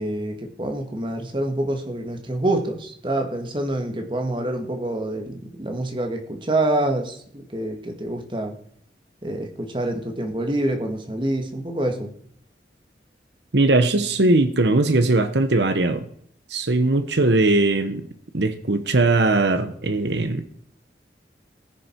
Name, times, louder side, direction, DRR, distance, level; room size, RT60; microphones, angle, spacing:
voice 1, 0.0-8.5 9.2-12.1, right 1 dB, 30° right, 1.8 m, -26 dB
voice 2, 13.5-16.1 16.5-18.0 18.3-20.4, right 2 dB, 85° right, 1.1 m, -20 dB
19.5 x 6.6 x 4.6 m
head